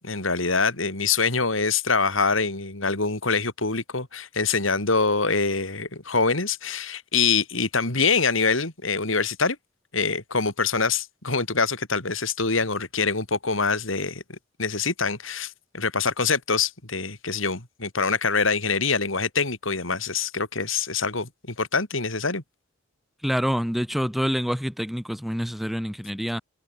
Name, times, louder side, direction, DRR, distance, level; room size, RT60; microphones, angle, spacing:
voice 1, 0.0-9.6 9.9-22.4, left 4 dB, 75° left, 3.9 m, -25 dB
voice 2, 23.2-26.4, equal, ahead, 2.4 m, -26 dB
head